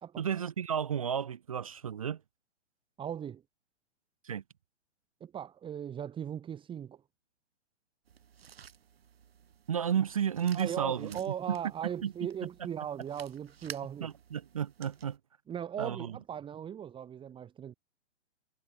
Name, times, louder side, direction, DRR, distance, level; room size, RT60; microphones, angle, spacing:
voice 1, 0.2-2.2 4.2-4.4 9.7-11.2 11.5-11.6 12.0-12.1 14.0-15.2 15.8-16.2, right 8 dB, 30° right, 0.4 m, -32 dB
voice 2, 3.0-3.4 5.2-7.0 10.5-14.1 15.5-17.7, right 9 dB, 15° right, 3.4 m, -38 dB
sound 1, 8.0-15.2, right 8 dB, 55° right, 4.9 m, -53 dB
figure-of-eight pair, 120°, 35 cm